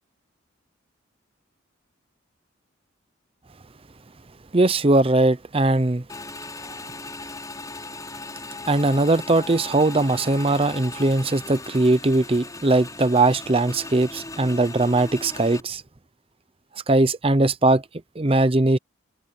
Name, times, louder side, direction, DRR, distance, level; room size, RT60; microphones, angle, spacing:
voice 1, 4.5-6.0 8.7-15.8 16.9-17.8 18.2-18.8, right 2 dB, 30° right, 0.7 m, -20 dB
Motorcycle / Engine, 6.1-15.6, left 3 dB, 15° left, 6.2 m, -38 dB
head